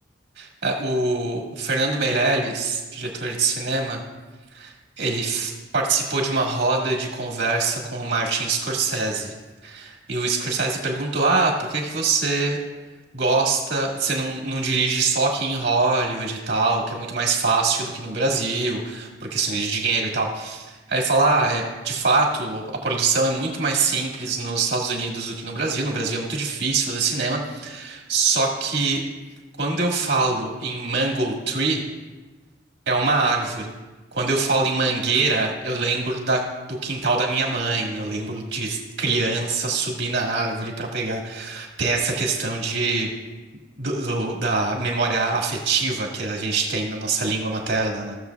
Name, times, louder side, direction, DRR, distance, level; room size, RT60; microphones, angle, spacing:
voice 1, 0.4-4.0 4.5-9.3 9.6-12.6 13.1-29.0 29.6-31.8 32.9-33.7 34.1-36.4 36.7-43.1 43.8-48.2, right 3 dB, 80° right, -1 dB, 1.7 m, -24 dB
16.5 x 6.8 x 2.3 m, 1.2 s
head